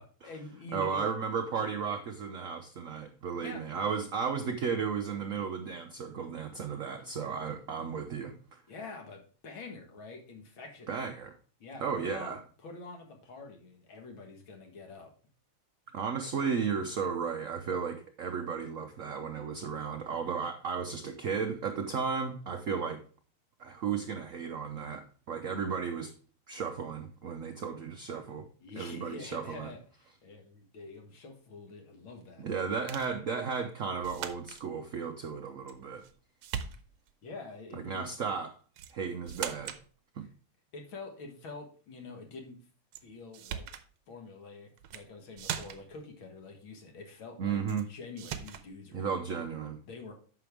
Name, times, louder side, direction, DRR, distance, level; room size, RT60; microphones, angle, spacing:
voice 1, 0.0-1.1 3.4-3.7 8.7-11.0 11.6-15.1 28.6-32.7 33.3-33.4 37.2-38.1 40.2-40.3 40.7-42.6 43.0-43.7 44.1-49.4 49.9-50.1, left 3 dB, 65° left, 3 dB, 2.3 m, -46 dB
voice 2, 0.7-8.6 10.9-11.3 11.8-12.4 15.9-23.0 23.6-26.1 26.5-28.5 28.8-29.7 32.4-36.0 37.8-38.6 38.9-39.7 40.2-40.3 47.4-47.8 48.9-49.8, right 6 dB, 70° right, 6 dB, 0.7 m, -34 dB
sound 1, 32.9-33.2 34.0-34.6 35.7-36.1 36.4-37.1 38.8-39.0 39.3-39.9 42.9-43.0 43.3-43.9 44.8-45.1 45.4-46.0 47.7-47.9 48.2-48.7, right 9 dB, 85° right, 1.7 m, -39 dB
9.5 x 6.0 x 3.4 m, 0.41 s
omnidirectional pair, 2.4 m